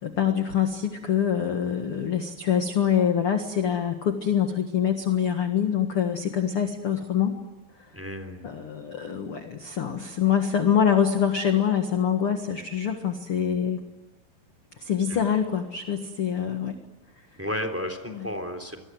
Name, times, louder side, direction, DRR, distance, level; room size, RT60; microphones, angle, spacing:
voice 1, 0.0-7.3 8.4-13.8 14.8-16.8 18.1-18.3, left 8 dB, 50° left, 6 dB, 1.8 m, -25 dB
voice 2, 7.9-8.5 15.1-15.2 17.4-18.8, equal, 5° right, 7 dB, 2.9 m, -33 dB
28.0 x 23.0 x 7.9 m, 1.2 s
omnidirectional pair, 4.6 m